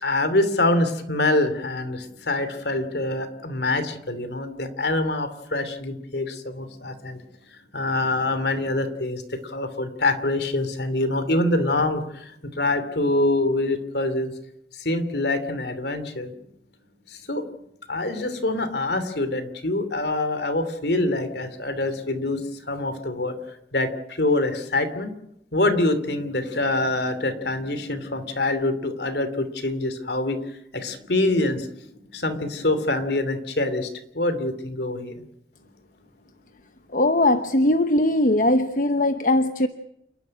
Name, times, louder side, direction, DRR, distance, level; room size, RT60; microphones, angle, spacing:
voice 1, 0.0-7.2 7.7-14.3 14.8-16.3 17.1-17.4 17.9-22.4 22.7-25.1 25.5-30.4 30.7-31.8 32.1-33.9 34.1-35.2, left 2 dB, 65° left, 10 dB, 2.8 m, -25 dB
voice 2, 36.9-39.7, left 1 dB, 45° left, 9 dB, 0.9 m, -20 dB
28.5 x 12.0 x 9.7 m, 0.80 s
head